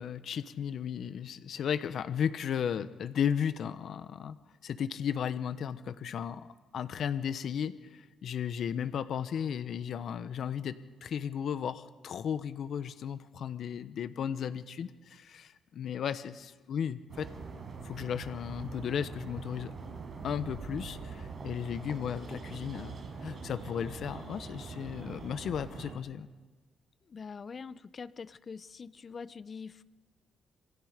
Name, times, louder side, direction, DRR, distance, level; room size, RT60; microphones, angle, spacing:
voice 1, 0.0-4.4 4.6-6.5 6.7-17.3 17.8-19.7 20.2-22.9 23.2-26.3, left 8 dB, 65° left, 12 dB, 1.1 m, -35 dB
sound 1, 17.1-25.9, right 4 dB, 45° right, 5.3 m, -43 dB
voice 2, 27.1-29.8, left 5 dB, 40° left, 15 dB, 0.8 m, -44 dB
27.5 x 25.5 x 5.2 m, 1.3 s
cardioid pair, 90°, 0 cm